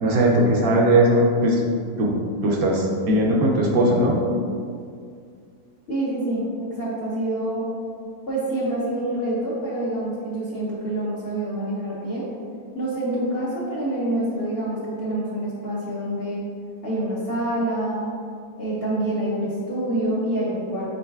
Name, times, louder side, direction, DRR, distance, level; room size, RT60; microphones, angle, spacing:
voice 1, 0.0-1.6 2.0-2.1 2.4-4.2, right 1 dB, 70° right, -2 dB, 1.0 m, -19 dB
voice 2, 5.9-7.7 8.3-12.2 12.7-16.4 16.8-18.1 18.6-20.9, right 1 dB, 50° left, -7 dB, 0.7 m, -26 dB
5.4 x 3.9 x 2.3 m, 2.3 s
omnidirectional pair, 1.7 m